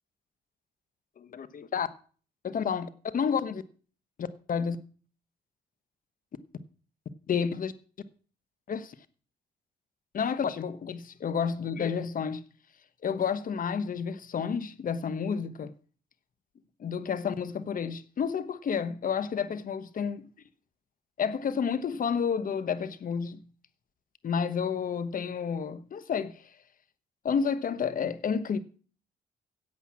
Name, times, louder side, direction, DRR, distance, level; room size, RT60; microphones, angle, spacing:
voice 1, 1.2-1.9 2.4-3.6 4.2-4.8 7.3-7.7 8.7-8.9 10.1-12.4 13.0-15.7 16.8-20.3 21.2-23.4 24.2-26.4 27.2-28.6, left 6 dB, 55° left, 1.1 m, -30 dB
10.5 x 8.1 x 7.3 m
cardioid pair, 90°, 17 cm